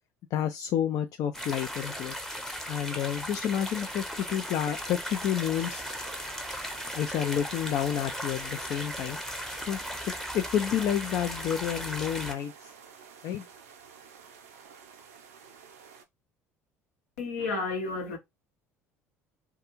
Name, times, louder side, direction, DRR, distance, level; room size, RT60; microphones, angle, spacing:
voice 1, 0.3-2.1 2.7-5.8 6.9-9.2 9.7-9.8 10.3-12.5 13.2-13.4, left 10 dB, 50° left, 0.4 m, -29 dB
sound 1, 1.3-12.3, equal, 5° left, 0.7 m, -37 dB
sound 2, 5.5-16.0, right 6 dB, 80° right, 0.5 m, -50 dB
voice 2, 17.2-18.2, left 3 dB, 75° left, 0.9 m, -31 dB
2.4 x 2.2 x 3.0 m
hypercardioid pair, 60°, 8 cm